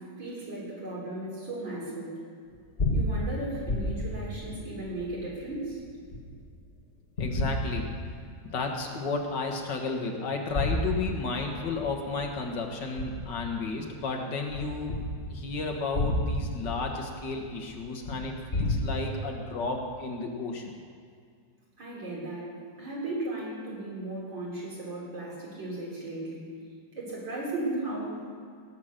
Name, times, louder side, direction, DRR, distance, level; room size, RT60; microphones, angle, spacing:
voice 1, 0.0-2.1 2.9-5.8 21.8-22.5 22.8-26.5 27.0-28.3, right 2 dB, 90° right, -5 dB, 4.4 m, -36 dB
sound 1, 2.5-6.6 7.2-8.5 9.0-9.1 10.3-13.9 14.5-18.8, left 1 dB, 30° left, 1.9 m, -32 dB
voice 2, 7.2-7.8 8.5-15.0 15.3-20.7, left 3 dB, 70° left, 2 dB, 2.0 m, -33 dB
17.0 x 7.4 x 6.6 m, 2.2 s
omnidirectional pair, 2.0 m